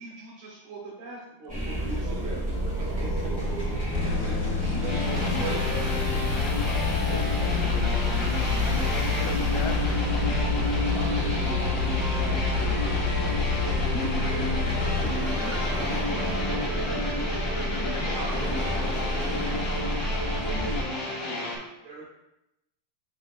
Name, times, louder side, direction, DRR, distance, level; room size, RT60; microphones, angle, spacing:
voice 1, 0.0-2.4 2.9-3.3 4.0-6.4 6.9-7.6 10.9-13.5 13.8-16.6 16.9-17.4 18.0-18.6 20.5-20.8 21.8-22.1, right 2 dB, 65° right, -5 dB, 2.7 m, -40 dB
sound 1, 1.5-20.8, left 1 dB, 5° right, 0.8 m, -29 dB
voice 2, 1.5-2.3 2.8-3.9 4.8-5.6 6.6-8.2 8.6-9.3 11.7-12.1 14.5-14.6 16.6-16.8, right 5 dB, 85° right, 3 dB, 2.5 m, -44 dB
sound 2, 3.9-15.6, left 5 dB, 70° left, 2.1 m, -31 dB
sound 3, 4.9-21.6, left 1 dB, 30° left, 2.2 m, -32 dB
voice 3, 8.6-10.8 16.7-17.1 17.7-18.6, left 7 dB, 90° left, 6 dB, 2.6 m, -40 dB
6.8 x 6.2 x 2.4 m, 0.88 s
omnidirectional pair, 4.5 m